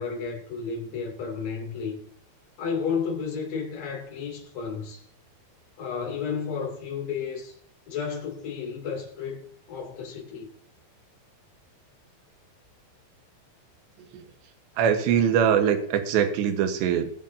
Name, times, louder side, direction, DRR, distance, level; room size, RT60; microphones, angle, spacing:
voice 1, 0.0-2.0 2.6-5.0 5.8-7.5 7.9-10.5, left 6 dB, 40° left, 3.5 m, -32 dB
voice 2, 14.8-17.1, right 8 dB, 75° right, 3.3 m, -22 dB
22.0 x 8.3 x 2.7 m
omnidirectional pair, 5.2 m